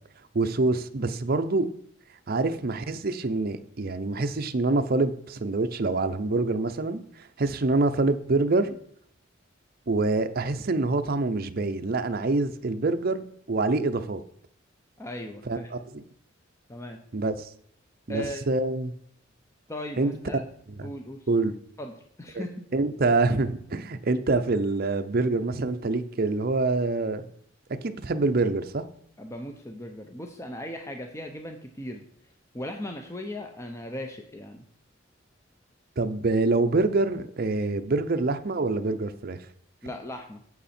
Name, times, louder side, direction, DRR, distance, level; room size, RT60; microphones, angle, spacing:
voice 1, 0.3-1.7 2.3-8.8 9.9-14.2 15.5-16.0 17.1-17.5 18.1-18.9 20.0-20.2 20.8-20.9 21.3-21.5 22.3-22.4 22.7-27.3 27.8-28.8 36.0-39.4, right 3 dB, 50° right, 8 dB, 0.6 m, -26 dB
voice 2, 15.0-15.7 16.7-17.0 18.1-18.4 19.7-20.4 20.8-21.3 21.8-22.6 29.2-32.1 32.5-34.7 39.8-40.4, left 1 dB, 15° left, 4 dB, 0.6 m, -38 dB
8.5 x 7.4 x 4.3 m, 0.65 s
head